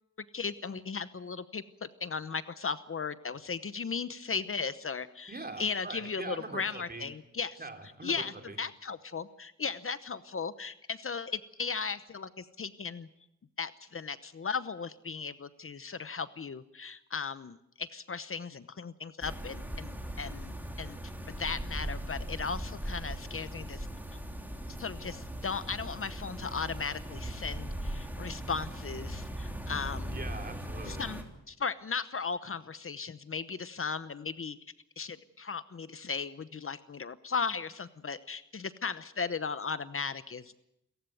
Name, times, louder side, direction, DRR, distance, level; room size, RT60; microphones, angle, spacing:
voice 1, 0.3-7.6 8.0-13.1 13.6-21.0 21.3-23.9 24.7-30.2 30.8-34.6 35.0-40.6, left 5 dB, 45° left, 13 dB, 0.9 m, -37 dB
voice 2, 5.3-7.1 7.6-8.6 30.1-31.1, right 3 dB, 30° right, 5 dB, 3.5 m, -42 dB
sound 1, 19.2-31.2, equal, 5° right, 3.3 m, -39 dB
28.0 x 15.0 x 9.2 m, 0.82 s
wide cardioid pair, 120°, 29 cm